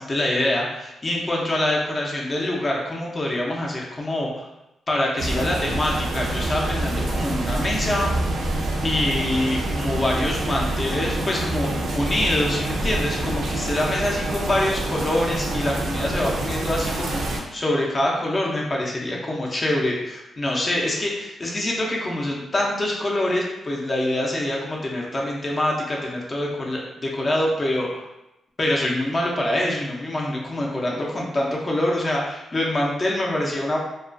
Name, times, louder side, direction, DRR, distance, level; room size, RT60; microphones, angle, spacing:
voice 1, 0.0-4.5 4.9-8.1 8.8-28.1 28.6-33.8, left 1 dB, 35° left, -2 dB, 0.5 m, -25 dB
sound 1, 5.2-17.4, right 2 dB, 75° right, 0.4 m, -26 dB
2.3 x 2.2 x 2.4 m, 0.91 s
cardioid pair, 75°, 0 cm